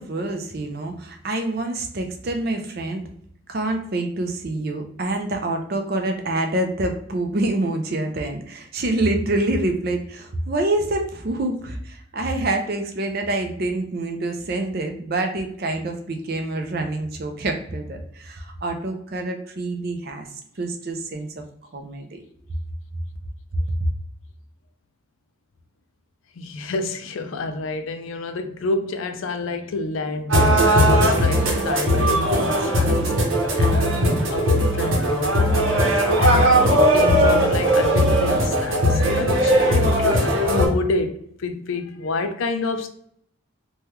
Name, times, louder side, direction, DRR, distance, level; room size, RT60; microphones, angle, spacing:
voice 1, 0.0-3.0 3.5-20.3 20.6-21.4 21.7-22.2, right 2 dB, 45° right, 0.5 m, -26 dB
voice 2, 26.4-35.4 36.2-42.9, left 3 dB, 70° left, 0.4 m, -29 dB
sound 1, 30.3-40.7, equal, 70° right, 0.9 m, -18 dB
3.3 x 2.2 x 2.9 m
head